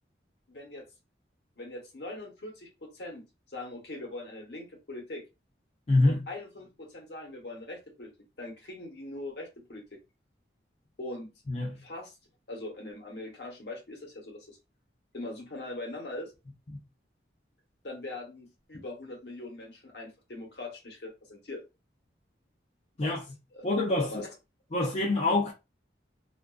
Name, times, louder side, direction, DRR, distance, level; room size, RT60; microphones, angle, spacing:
voice 1, 0.5-0.9 1.6-5.2 6.0-8.1 8.4-10.0 11.0-11.3 11.8-12.2 12.5-14.6 15.1-16.3 17.8-21.6 23.0-23.2 23.5-23.7 24.1-24.3 25.1-25.3, left 2 dB, 65° left, 0.9 m, -41 dB
voice 2, 5.9-6.2 11.5-11.8 23.0-23.2 23.6-24.2 24.7-25.5, left 2 dB, 35° left, 0.4 m, -25 dB
2.4 x 2.3 x 2.2 m
head